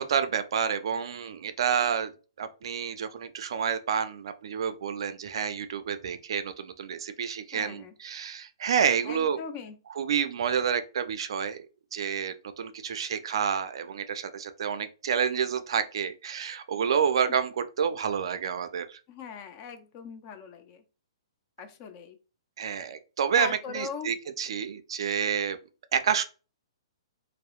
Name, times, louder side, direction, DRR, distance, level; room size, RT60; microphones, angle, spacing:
voice 1, 0.0-9.4 10.0-11.6 11.9-19.0 22.6-25.6 25.9-26.2, right 7 dB, 65° right, 0.4 m, -29 dB
voice 2, 7.5-7.9 9.0-9.8 19.1-20.8 21.6-22.2 23.4-24.1, left 6 dB, 35° left, 0.4 m, -40 dB
2.7 x 2.0 x 2.3 m
hypercardioid pair, 145°, 3 cm